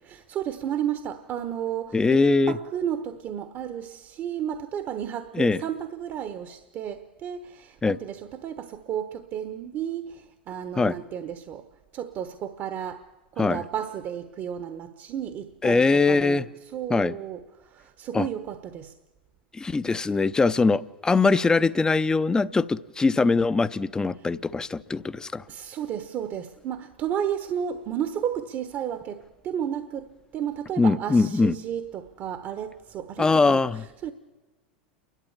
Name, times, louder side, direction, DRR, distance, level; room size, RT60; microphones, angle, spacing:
voice 1, 0.0-16.4 16.7-18.9 25.5-33.6 34.0-34.1, right 9 dB, 40° right, 1.1 m, -33 dB
voice 2, 1.9-2.6 5.3-5.6 7.8-8.0 10.8-11.0 13.4-13.6 15.6-16.4 16.9-17.1 18.1-18.3 19.5-25.4 30.8-31.6 33.2-33.8, left 3 dB, 15° left, 0.7 m, -22 dB
29.5 x 12.0 x 7.3 m
hypercardioid pair, 90°, 5 cm